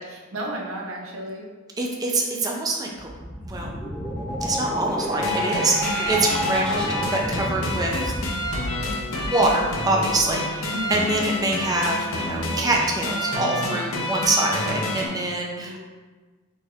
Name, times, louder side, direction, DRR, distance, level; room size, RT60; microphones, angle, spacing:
voice 1, 0.1-1.5 10.7-11.1 15.6-15.8, right 1 dB, 85° right, -2 dB, 0.8 m, -33 dB
voice 2, 1.8-3.1 3.4-3.7 4.4-8.1 9.2-15.8, right 2 dB, 20° right, -1 dB, 0.5 m, -25 dB
sound 1, 2.9-10.6, equal, 5° left, 0.9 m, -30 dB
sound 2, 5.2-15.1, left 1 dB, 85° left, 0.7 m, -28 dB
4.2 x 3.4 x 3.4 m, 1.3 s
head